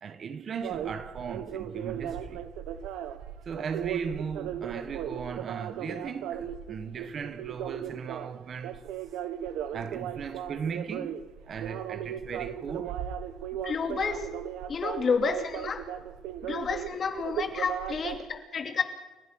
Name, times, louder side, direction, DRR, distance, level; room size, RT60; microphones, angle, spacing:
voice 1, 0.0-2.5 3.4-8.9 9.7-13.0, right 6 dB, 40° right, 1.3 m, -37 dB
sound 1, 0.6-18.2, right 10 dB, 90° right, 1.4 m, -37 dB
voice 2, 13.6-14.3 14.7-15.8 16.4-18.8, left 5 dB, 35° left, 2.9 m, -30 dB
29.5 x 16.0 x 6.2 m
cardioid pair, 155°, 0 cm